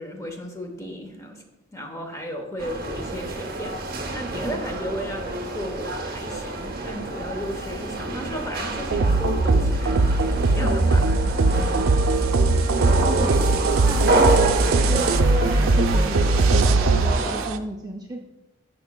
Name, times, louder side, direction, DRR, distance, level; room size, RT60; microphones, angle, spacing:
voice 1, 0.0-1.4 1.7-3.8 4.1-12.2, equal, 15° left, 3 dB, 0.9 m, -35 dB
sound 1, 2.6-17.5, right 2 dB, 50° right, 0.8 m, -28 dB
sound 2, 8.9-17.6, right 3 dB, 80° right, 0.4 m, -20 dB
voice 2, 13.7-14.4 14.7-18.2, right 2 dB, 20° right, 2 dB, 0.4 m, -33 dB
11.0 x 5.3 x 2.2 m, 0.98 s
head